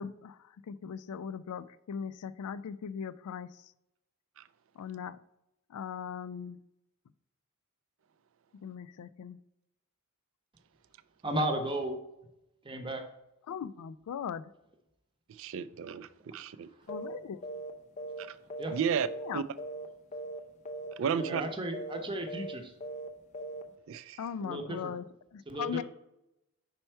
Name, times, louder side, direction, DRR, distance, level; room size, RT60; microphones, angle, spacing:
voice 1, 0.0-3.7 4.8-5.2 5.7-6.6 8.6-9.4 13.5-14.5 16.9-17.5 19.2-19.4 24.2-25.0 25.3-25.8, left 7 dB, 90° left, 16 dB, 0.3 m, -39 dB
voice 2, 11.2-12.0 12.6-13.0 18.6-18.8 21.1-22.7 24.4-24.9 25.5-25.8, right 1 dB, 20° right, 5 dB, 0.7 m, -34 dB
voice 3, 15.3-16.7 18.2-18.4 18.7-19.1 19.3-19.4 21.0-21.4 23.9-24.2, right 7 dB, 60° right, 15 dB, 0.3 m, -33 dB
sound 1, 16.9-17.2 17.4-17.7 18.0-19.3 19.6-19.9 20.1-20.4 20.6-20.9 21.2-21.5 21.7-22.0 22.3-22.5 22.8-23.1 23.3-23.6, right 2 dB, 30° left, 0.5 m, -39 dB
5.6 x 4.4 x 4.4 m, 0.87 s
head